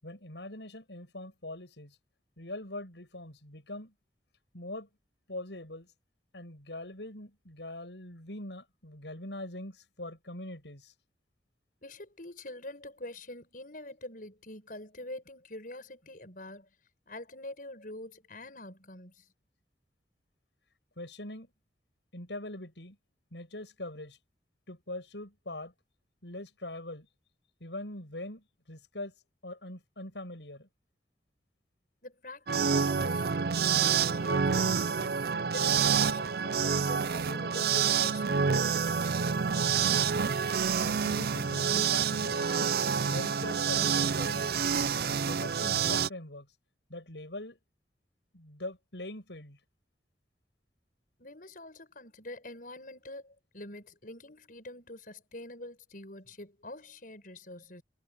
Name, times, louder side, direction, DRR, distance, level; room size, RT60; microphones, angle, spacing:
voice 1, 0.0-2.0 2.4-3.9 4.5-4.9 5.3-5.9 6.3-10.9 21.0-21.5 22.1-23.0 23.3-24.2 24.7-25.7 26.2-27.1 27.6-29.1 29.4-30.7 40.8-42.8 43.1-44.7 45.1-46.5 46.9-47.6 48.3-49.6, left 1 dB, 80° left, 7.9 m, -42 dB
voice 2, 11.8-16.7 17.1-19.1 32.0-35.2 35.5-38.5 51.2-57.8, left 1 dB, 50° left, 7.5 m, -45 dB
sound 1, 32.5-46.1, right 6 dB, 60° right, 0.5 m, -28 dB
head